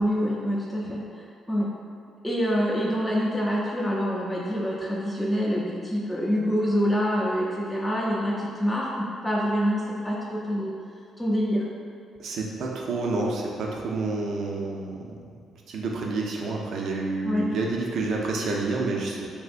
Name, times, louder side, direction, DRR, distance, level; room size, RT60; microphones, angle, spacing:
voice 1, 0.0-1.7 2.2-10.7 11.2-11.7 17.2-17.5, equal, 5° left, -6 dB, 0.4 m, -26 dB
voice 2, 12.2-15.2 15.7-19.3, right 3 dB, 70° right, -1 dB, 0.5 m, -29 dB
3.4 x 2.7 x 2.5 m, 2.2 s
cardioid pair, 90°, 0 cm